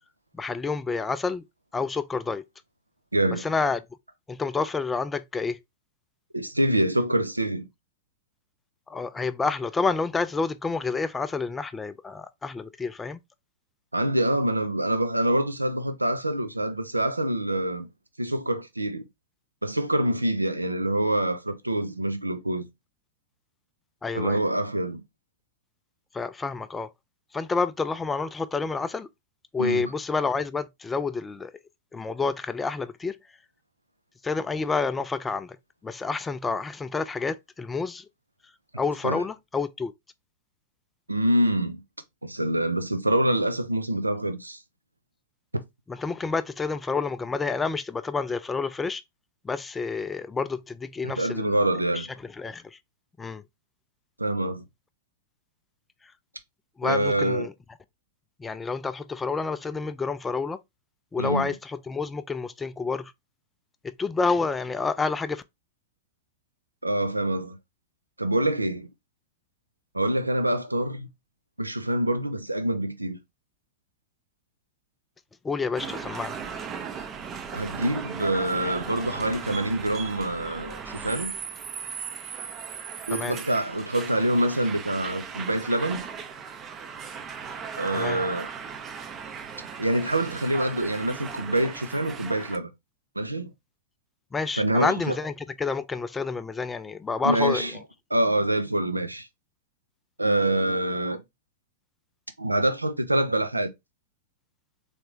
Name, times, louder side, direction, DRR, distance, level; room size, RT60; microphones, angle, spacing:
voice 1, 0.4-1.4 1.7-2.4 3.3-3.8 4.3-5.6 8.9-13.2 24.0-24.4 26.1-26.9 27.3-29.1 29.5-31.5 31.9-33.2 34.2-35.6 35.8-38.1 38.8-39.9 45.9-49.0 49.4-51.6 51.9-52.1 52.4-52.8 53.2-53.4 56.8-57.5 58.4-60.6 61.1-63.1 63.8-65.4 75.4-76.4 83.1-83.4 87.9-88.2 94.3-97.8, left 4 dB, 15° left, 0.3 m, -29 dB
voice 2, 3.1-3.4 6.3-7.7 13.9-17.9 18.2-19.0 19.6-22.7 24.1-25.0 29.6-29.9 39.0-39.2 41.1-41.8 42.2-44.6 51.2-52.1 54.2-54.6 56.8-57.5 61.2-61.5 66.8-67.6 68.2-68.9 69.9-71.1 71.6-73.2 77.5-81.3 83.1-86.0 87.8-88.5 89.8-92.7 93.2-93.5 94.6-95.2 97.2-97.7 98.1-99.3 100.2-101.2 102.4-103.7, right 1 dB, 90° right, 0.6 m, -25 dB
sound 1, 75.8-92.6, right 6 dB, 30° right, 0.6 m, -37 dB
3.8 x 3.3 x 3.0 m
figure-of-eight pair, 95°, 0 cm